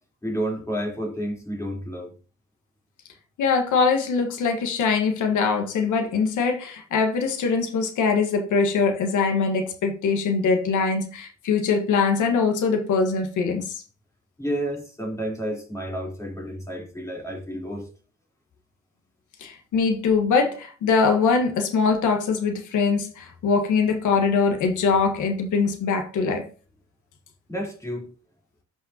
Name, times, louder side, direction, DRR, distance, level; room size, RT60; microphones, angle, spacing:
voice 1, 0.2-2.2 14.4-17.9 27.5-28.1, equal, 10° left, 3.7 m, -30 dB
voice 2, 3.4-13.8 19.4-26.5, left 5 dB, 80° left, 1.5 m, -22 dB
12.5 x 5.4 x 2.8 m
cardioid pair, 90°, 30 cm